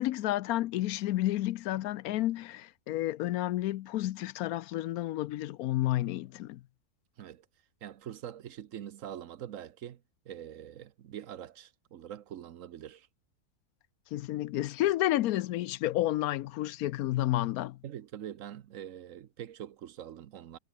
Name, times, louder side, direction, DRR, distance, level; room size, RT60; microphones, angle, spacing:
voice 1, 0.0-6.6 14.1-17.8, left 15 dB, 80° left, 1.0 m, -30 dB
voice 2, 7.8-10.0 10.3-13.1 17.8-20.6, right 10 dB, 65° right, 1.1 m, -44 dB
omnidirectional pair, 1.5 m